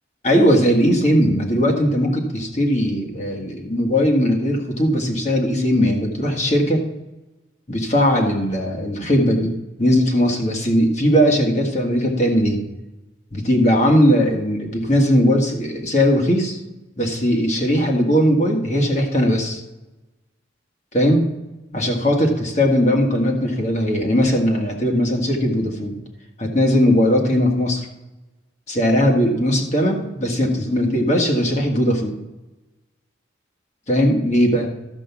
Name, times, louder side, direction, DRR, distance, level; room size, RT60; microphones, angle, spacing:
voice 1, 0.2-6.8 7.7-12.6 13.3-16.6 17.0-19.6 20.9-21.2 21.7-26.0 26.4-27.9 28.7-32.1 33.9-34.7, equal, 40° left, 1 dB, 1.9 m, -19 dB
12.5 x 5.3 x 7.2 m, 1.0 s
head